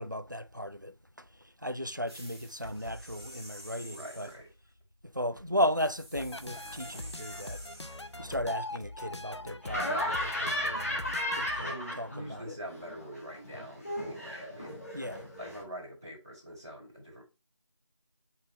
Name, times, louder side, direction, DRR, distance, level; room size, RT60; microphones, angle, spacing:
voice 1, 0.0-4.3 5.0-7.6 8.2-11.1 11.4-12.6 14.9-15.3, equal, 40° right, 0.4 m, -35 dB
sound 1, 2.1-4.5 5.8-8.4, equal, 55° right, 1.8 m, -48 dB
voice 2, 3.8-4.5 11.6-14.8 15.3-17.2, equal, 10° right, 1.6 m, -44 dB
sound 2, 6.1-11.6, left 2 dB, 60° left, 0.6 m, -42 dB
Laughter, 9.6-12.4 12.7-15.6, left 1 dB, 30° left, 1.5 m, -35 dB
4.9 x 4.5 x 4.3 m
figure-of-eight pair, 175°, 16 cm